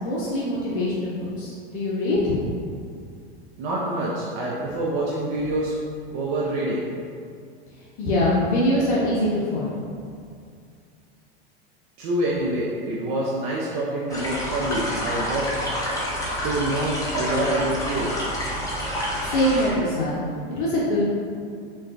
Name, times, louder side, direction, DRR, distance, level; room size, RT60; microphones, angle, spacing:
voice 1, 0.0-2.4 8.0-9.8 19.2-20.1 20.6-21.1, left 1 dB, 55° left, -6 dB, 0.7 m, -23 dB
voice 2, 3.6-5.8 6.1-6.9 12.0-15.5 16.4-18.1, right 1 dB, 45° right, -5 dB, 0.5 m, -26 dB
sound 1, 14.1-19.7, equal, 10° left, 0.5 m, -28 dB
3.7 x 2.3 x 2.5 m, 2.3 s
hypercardioid pair, 110°, 31 cm